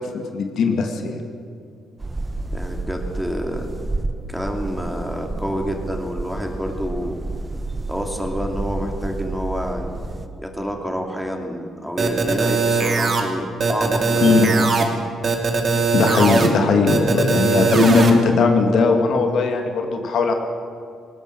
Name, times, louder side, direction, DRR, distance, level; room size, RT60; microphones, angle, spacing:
voice 1, 0.1-1.1 14.2-14.5 15.9-20.3, left 5 dB, 70° left, 4 dB, 2.2 m, -19 dB
sound 1, 2.0-10.3, right 2 dB, 25° right, 1.3 m, -30 dB
voice 2, 2.5-3.7 4.3-7.2 7.9-9.9 10.4-14.9, equal, ahead, 2 dB, 2.9 m, -28 dB
sound 2, 12.0-13.2 13.6-14.8 15.2-16.5 16.9-18.1, right 4 dB, 45° right, 2.8 m, -19 dB
19.0 x 18.0 x 7.7 m, 2.3 s
cardioid pair, 90°, 0 cm